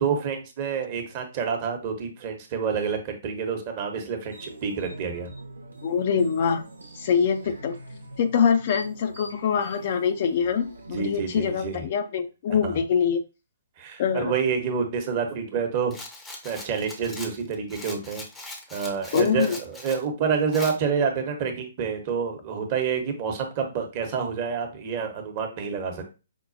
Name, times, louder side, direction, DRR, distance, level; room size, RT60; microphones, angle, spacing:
voice 1, 0.0-5.3 10.9-11.9 12.6-12.8 13.8-15.9 16.4-18.2 18.7-26.0, right 6 dB, 35° right, 4 dB, 0.9 m, -28 dB
sound 1, 4.3-11.8, right 1 dB, 90° right, 0.9 m, -43 dB
voice 2, 5.8-6.6 7.0-7.8 8.2-13.2 14.0-14.3 19.1-19.6, left 7 dB, 45° left, 8 dB, 0.4 m, -24 dB
Rattle, 15.9-20.0 20.5-20.8, left 2 dB, 10° left, 0.7 m, -40 dB
5.2 x 2.2 x 2.6 m, 0.30 s
figure-of-eight pair, 130°, 0 cm